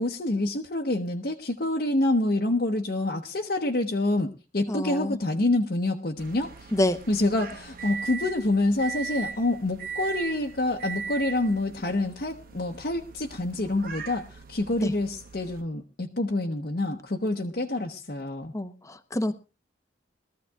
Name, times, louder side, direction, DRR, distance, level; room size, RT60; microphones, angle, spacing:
voice 1, 0.0-6.5 7.1-18.5, left 2 dB, 50° left, 1 dB, 0.9 m, -27 dB
voice 2, 4.7-5.2 6.7-7.0 14.8-14.9 18.5-19.3, left 1 dB, 15° left, 9 dB, 0.8 m, -27 dB
sound 1, 6.2-15.6, right 6 dB, 50° right, 1.0 m, -39 dB
22.0 x 14.5 x 2.3 m, 0.30 s
head